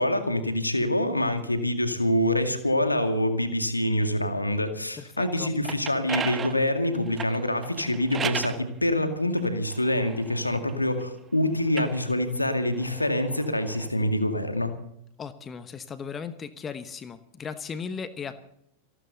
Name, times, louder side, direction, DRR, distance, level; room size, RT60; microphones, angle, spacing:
voice 1, 0.0-14.7, left 1 dB, 85° left, 7 dB, 2.1 m, -26 dB
voice 2, 5.0-5.5 15.2-18.4, left 6 dB, 20° left, 12 dB, 1.1 m, -37 dB
sound 1, 5.4-8.6 9.4-11.1 11.6-13.9, right 7 dB, 25° right, 1.2 m, -36 dB
27.5 x 12.5 x 4.0 m, 0.74 s
figure-of-eight pair, 90°, 0 cm